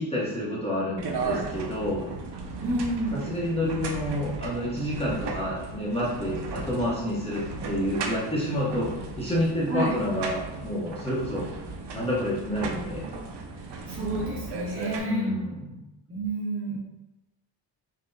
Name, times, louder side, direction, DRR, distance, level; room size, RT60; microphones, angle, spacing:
voice 1, 0.0-2.1 3.1-11.4 11.9-13.0 15.0-15.8 16.7-16.8, left 1 dB, 15° left, -7 dB, 0.8 m, -29 dB
sound 1, 1.0-15.0, right 3 dB, 65° right, 0.7 m, -36 dB
voice 2, 2.6-3.2 9.7-9.9 13.9-15.3 16.1-16.8, right 2 dB, 30° right, -4 dB, 1.0 m, -29 dB
5.8 x 2.1 x 3.8 m, 0.96 s
wide cardioid pair, 165°, 45 cm